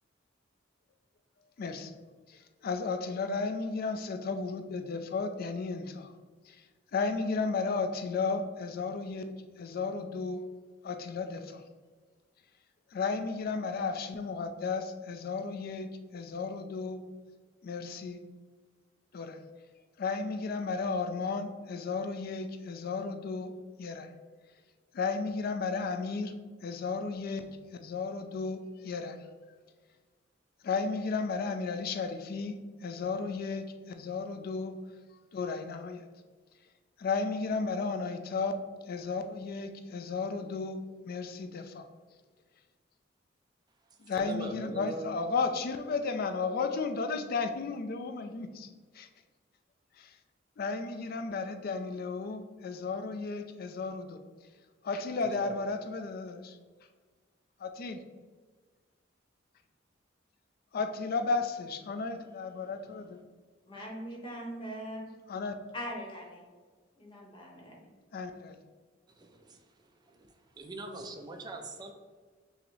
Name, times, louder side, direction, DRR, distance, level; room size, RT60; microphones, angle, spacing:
voice 1, 1.6-1.9 2.3-6.1 6.5-6.6 6.9-10.4 10.8-11.6 12.9-17.0 17.6-18.2 19.1-19.4 20.0-23.5 23.8-24.1 24.9-26.3 26.6-27.5 27.8-29.2 30.6-34.7 35.3-36.0 37.0-38.5 38.9-41.8 44.0-48.7 49.0-49.1 50.0-50.1 50.6-54.2 54.8-56.6 57.6-58.0 60.7-63.2 65.3-65.5 68.1-68.6, left 4 dB, 50° left, 7 dB, 0.3 m, -34 dB
voice 2, 44.1-45.2 55.2-55.5 69.2-69.6 70.1-70.3 70.6-71.9, right 2 dB, 20° right, 4 dB, 0.4 m, -41 dB
voice 3, 63.7-65.0 65.7-66.4 67.0-67.9, equal, 25° left, -1 dB, 0.9 m, -41 dB
5.8 x 2.0 x 3.1 m, 1.4 s
head